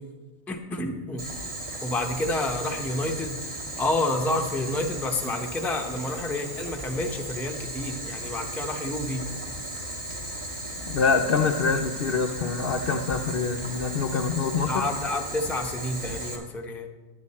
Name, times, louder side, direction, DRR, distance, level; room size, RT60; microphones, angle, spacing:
voice 1, 0.5-1.2 1.8-3.3 3.8-9.2 14.7-16.9, left 2 dB, ahead, 2 dB, 0.6 m, -29 dB
Boiling, 1.2-16.3, right 1 dB, 25° right, 1.6 m, -36 dB
voice 2, 10.9-14.9, left 5 dB, 60° left, 4 dB, 0.6 m, -25 dB
10.5 x 10.0 x 4.2 m, 1.3 s
omnidirectional pair, 1.5 m